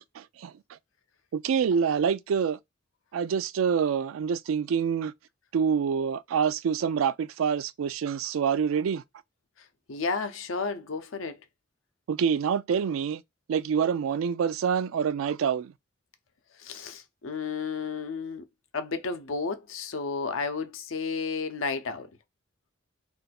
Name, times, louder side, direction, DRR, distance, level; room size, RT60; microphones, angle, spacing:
voice 1, 0.2-0.8 1.3-2.6 3.1-5.1 5.5-9.0 12.1-13.2 13.5-15.7, right 7 dB, 85° right, 0.3 m, -26 dB
voice 2, 9.9-11.4 16.6-18.4 18.7-22.1, left 4 dB, 80° left, 0.6 m, -32 dB
2.5 x 2.3 x 4.0 m
head